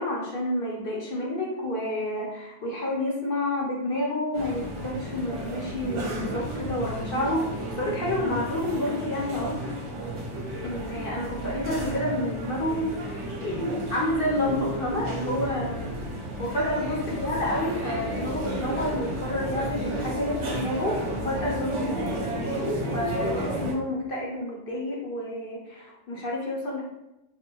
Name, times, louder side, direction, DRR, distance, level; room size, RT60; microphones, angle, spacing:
voice 1, 0.0-9.7 10.6-16.0 16.4-26.8, left 1 dB, 50° left, -3 dB, 0.8 m, -29 dB
sound 1, 4.3-23.7, right 1 dB, 60° right, 0.9 m, -32 dB
4.1 x 2.2 x 3.0 m, 0.91 s
omnidirectional pair, 1.5 m